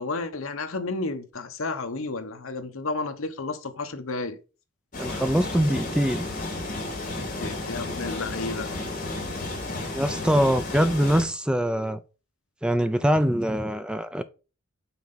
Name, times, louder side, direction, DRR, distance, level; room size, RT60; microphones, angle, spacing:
voice 1, 0.0-4.4 7.4-8.7, left 3 dB, 70° left, 1.0 m, -32 dB
sound 1, 4.9-11.2, left 2 dB, 40° left, 2.5 m, -32 dB
voice 2, 5.0-6.3 9.9-12.0 12.6-14.2, equal, 5° right, 0.4 m, -23 dB
5.8 x 4.3 x 5.5 m
head